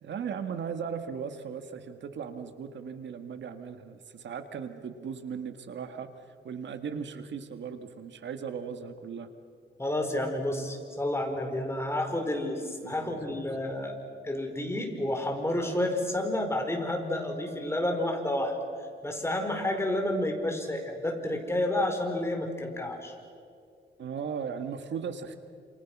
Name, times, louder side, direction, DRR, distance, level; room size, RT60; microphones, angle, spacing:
voice 1, 0.0-9.3 12.8-13.2 24.0-25.4, right 6 dB, 70° right, 8 dB, 1.9 m, -37 dB
voice 2, 9.8-13.9 14.2-18.6 19.0-23.1, left 1 dB, 15° left, 4 dB, 4.8 m, -30 dB
30.0 x 28.0 x 6.1 m, 2.4 s
cardioid pair, 105°, 19 cm